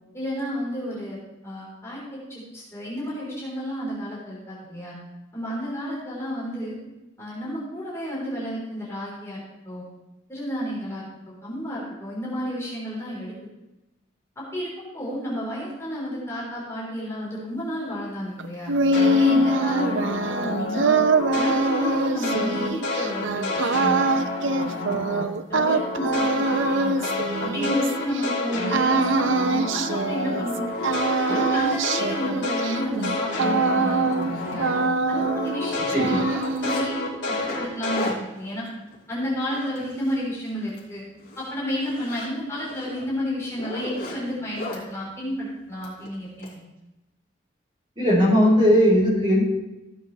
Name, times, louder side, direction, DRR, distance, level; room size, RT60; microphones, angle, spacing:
voice 1, 0.1-4.9 5.3-6.8 7.2-9.9 10.3-11.1 11.4-13.3 14.4-14.7 14.9-18.7 19.1-21.0 21.3-24.0 24.6-24.8 25.1-27.1 27.4-30.7 31.0-34.7 35.1-37.0 37.3-38.7 39.1-41.0 41.4-46.5, equal, 15° left, -7 dB, 3.9 m, -31 dB
sound 1, 18.4-28.2 28.7-30.6 30.8-34.3 34.6-35.6 35.9-36.9, right 3 dB, 75° right, 0.6 m, -24 dB
sound 2, 18.9-25.2 25.5-34.8 35.1-38.1, left 2 dB, 70° left, 2.5 m, -29 dB
Zipper (clothing), 30.0-30.1 30.5-31.8 32.4-32.6 32.9-33.1 33.4-33.5 33.9-35.2 35.4-36.9 37.3-40.2 40.6-40.8 41.2-44.8 45.8-46.5, left 2 dB, 50° left, 3.5 m, -38 dB
voice 2, 35.9-36.2 48.0-49.4, equal, 25° right, -5 dB, 4.5 m, -19 dB
15.5 x 8.1 x 3.3 m, 0.99 s
head